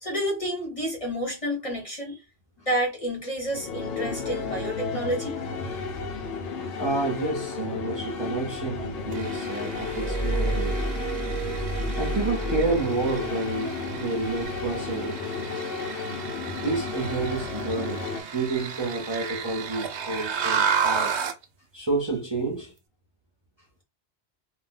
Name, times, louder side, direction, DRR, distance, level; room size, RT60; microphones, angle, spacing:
voice 1, 0.0-2.2 2.7-5.4 5.6-5.8, equal, 35° left, 0.8 m, -30 dB
sound 1, 3.5-18.2, left 4 dB, 65° left, 0.8 m, -33 dB
voice 2, 6.8-10.8 12.0-15.7 16.5-18.0 18.3-21.2 21.7-22.7, right 3 dB, 30° right, 0.7 m, -29 dB
sound 2, 9.1-21.4, right 6 dB, 85° right, 0.9 m, -33 dB
Glass, 9.7-13.3 14.3-14.5, right 2 dB, 5° left, 0.8 m, -30 dB
2.4 x 2.1 x 3.6 m
omnidirectional pair, 1.1 m